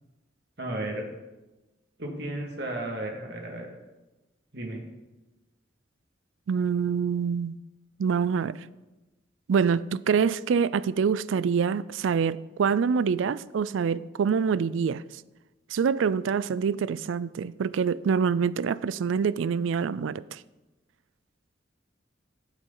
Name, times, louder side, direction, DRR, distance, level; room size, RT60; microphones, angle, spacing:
voice 1, 0.6-1.0 2.0-3.7 4.5-4.8, right 1 dB, 60° right, 2.0 m, -33 dB
voice 2, 6.5-7.6 8.0-8.6 9.5-15.0 15.7-20.4, right 6 dB, 80° right, 0.4 m, -25 dB
13.0 x 8.1 x 3.9 m
head